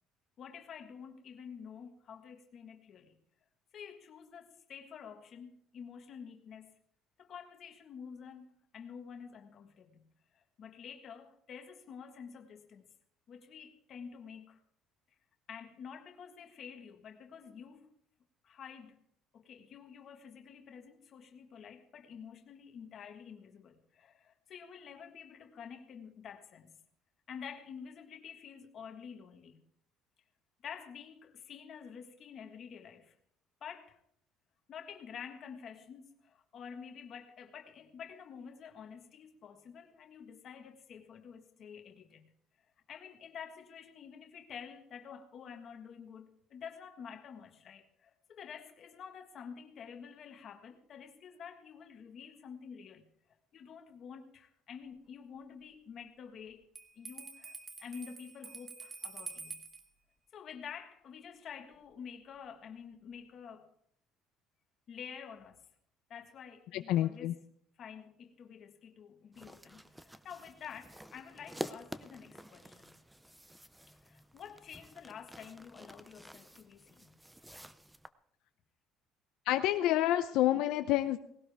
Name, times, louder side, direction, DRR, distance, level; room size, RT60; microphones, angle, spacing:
voice 1, 0.4-3.2 3.7-6.8 7.2-10.0 10.3-12.9 13.3-14.6 15.5-17.9 18.4-19.0 19.3-26.8 27.3-29.6 30.6-33.1 33.6-34.0 34.7-42.3 42.9-53.1 53.5-56.7 56.9-59.6 60.3-63.7 64.9-65.6 66.1-67.4 67.8-72.9 74.0-77.2, left 7 dB, 35° left, 1.6 m, -49 dB
Bell, 56.7-59.8, right 5 dB, 20° right, 1.5 m, -47 dB
voice 2, 66.7-67.3 79.5-81.2, left 14 dB, 65° left, 0.6 m, -28 dB
sound 1, 69.3-78.1, right 1 dB, 5° right, 0.5 m, -49 dB
19.0 x 17.5 x 3.5 m
cardioid pair, 175°, 0 cm